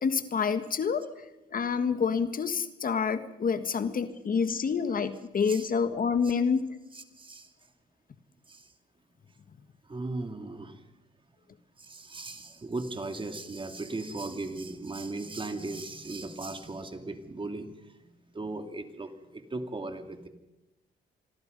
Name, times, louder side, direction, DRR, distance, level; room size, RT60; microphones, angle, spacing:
voice 1, 0.0-1.0 1.5-6.7, left 6 dB, 45° left, 10 dB, 1.6 m, -28 dB
voice 2, 6.9-7.5 8.5-8.7 9.8-10.9 11.8-20.3, right 2 dB, 25° right, 7 dB, 2.6 m, -38 dB
27.0 x 21.5 x 5.4 m, 0.96 s
cardioid pair, 90°, 20 cm